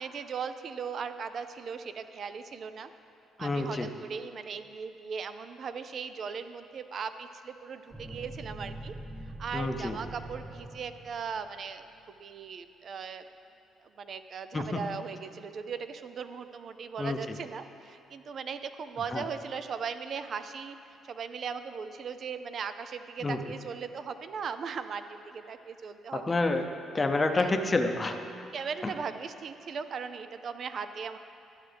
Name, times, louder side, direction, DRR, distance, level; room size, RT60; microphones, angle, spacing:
voice 1, 0.0-2.9 3.4-11.9 12.2-13.3 13.8-26.4 27.4-27.6 28.5-31.2, right 6 dB, 50° right, 10 dB, 0.4 m, -38 dB
voice 2, 3.4-3.9 9.5-10.0 14.5-14.8 17.0-17.2 19.1-19.2 23.2-23.4 26.1-26.6 26.9-28.2 28.8-28.9, left 2 dB, 25° left, 6 dB, 0.7 m, -28 dB
sound 1, 7.9-12.0, right 1 dB, 5° right, 1.0 m, -44 dB
12.0 x 8.8 x 3.4 m, 2.7 s
cardioid pair, 100°, 0 cm